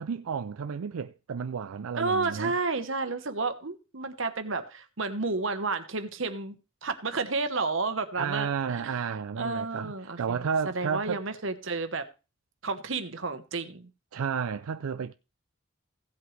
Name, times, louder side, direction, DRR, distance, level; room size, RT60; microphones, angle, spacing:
voice 1, 0.0-2.5 8.2-11.2 14.1-15.1, right 6 dB, 85° right, 0.4 m, -32 dB
voice 2, 1.9-6.6 6.8-8.9 9.3-12.1 12.6-13.9, right 3 dB, 65° right, 1.2 m, -31 dB
16.0 x 7.9 x 3.3 m
head